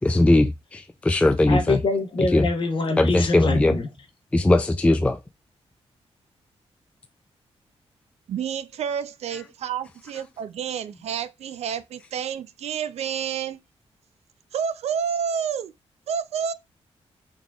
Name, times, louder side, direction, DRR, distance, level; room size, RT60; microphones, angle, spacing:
voice 1, 0.0-1.8 2.3-2.5 3.0-3.8 4.3-5.2, left 2 dB, 10° left, 0.3 m, -19 dB
voice 2, 1.5-3.9, left 3 dB, 50° left, 0.9 m, -24 dB
voice 3, 8.3-13.6 14.5-15.7 16.1-16.5, right 7 dB, 75° right, 0.4 m, -29 dB
3.7 x 3.5 x 2.3 m
cardioid pair, 90°, 11 cm